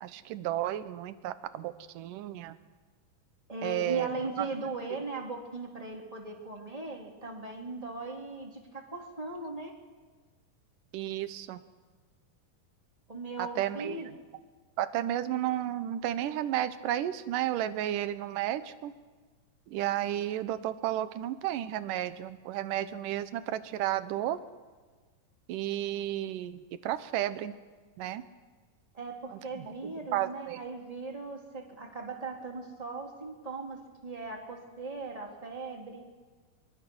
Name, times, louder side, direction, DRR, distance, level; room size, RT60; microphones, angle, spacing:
voice 1, 0.0-2.6 3.6-4.1 4.4-4.5 10.9-11.6 13.4-14.1 14.8-18.9 19.7-24.4 25.5-27.5 28.0-28.2 29.3-30.6, right 12 dB, 75° right, 12 dB, 2.4 m, -32 dB
voice 2, 3.5-9.7 13.1-14.1 28.9-36.1, right 3 dB, 10° right, 0 dB, 2.7 m, -39 dB
23.5 x 23.5 x 6.2 m, 1.4 s
omnidirectional pair, 4.0 m